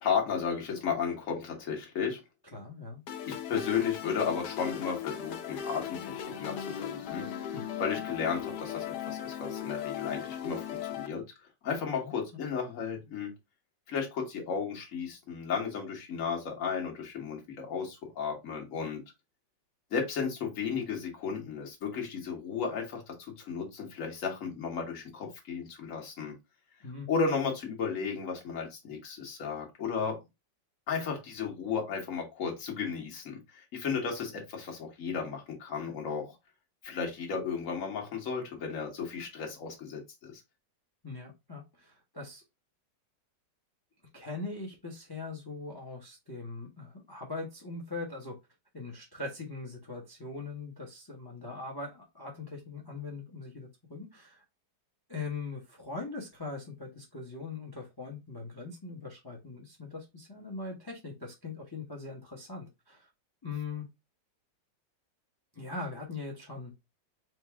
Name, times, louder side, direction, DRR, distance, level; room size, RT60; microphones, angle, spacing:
voice 1, 0.0-2.2 3.2-7.5 7.8-11.2 11.6-13.3 13.9-19.0 19.9-26.3 27.1-30.2 30.9-36.4 36.8-40.3, left 6 dB, 50° left, 1.5 m, -34 dB
voice 2, 2.5-3.0 7.5-7.6 12.0-12.1 26.8-27.1 41.0-42.4 44.1-48.4 48.7-54.4 55.1-63.1 63.4-63.9 65.5-66.7, left 3 dB, 20° left, 0.6 m, -41 dB
sound 1, 3.1-11.1, left 9 dB, 70° left, 1.2 m, -38 dB
4.6 x 2.6 x 3.4 m
omnidirectional pair, 1.9 m